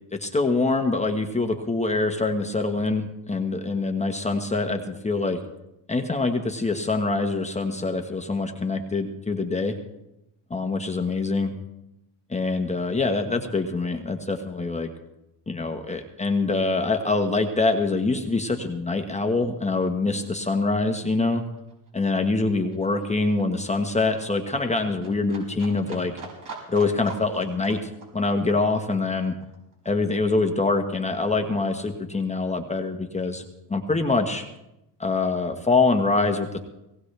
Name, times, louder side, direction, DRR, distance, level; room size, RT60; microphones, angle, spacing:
voice 1, 0.1-5.4 5.9-9.8 10.5-11.6 12.3-14.9 15.5-21.4 21.9-26.1 26.7-29.3 29.8-33.4 33.7-34.4 35.0-36.6, left 3 dB, 15° left, 4 dB, 1.4 m, -25 dB
Livestock farm animals working animals, 19.4-19.6 19.8-30.8 31.1-32.2 32.5-32.6, right 3 dB, 45° right, 5.9 m, -45 dB
19.0 x 17.5 x 3.4 m, 0.91 s
cardioid pair, 105°, 43 cm